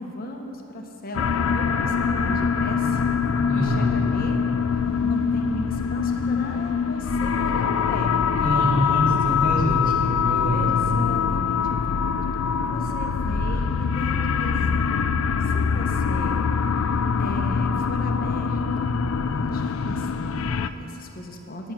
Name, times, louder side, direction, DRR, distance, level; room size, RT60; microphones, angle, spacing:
voice 1, 0.0-3.2 3.5-4.4 4.7-8.6 10.5-14.9 15.4-16.4 17.2-18.9 19.2-21.7, left 1 dB, 45° left, 2 dB, 1.0 m, -36 dB
sound 1, 1.1-20.7, left 6 dB, 70° left, 0.4 m, -23 dB
voice 2, 3.5-4.0 8.4-10.7, equal, 45° right, -4 dB, 2.2 m, -25 dB
10.0 x 9.0 x 5.7 m, 3.0 s
head